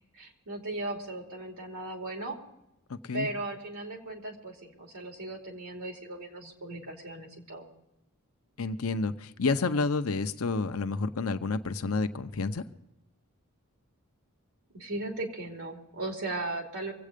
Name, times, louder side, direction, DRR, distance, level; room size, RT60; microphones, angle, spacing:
voice 1, 0.1-2.4 3.1-7.7 14.7-16.9, right 2 dB, 75° right, 2 dB, 2.9 m, -37 dB
voice 2, 8.6-12.6, left 3 dB, 70° left, 9 dB, 0.7 m, -29 dB
24.5 x 8.4 x 5.1 m, 0.88 s
head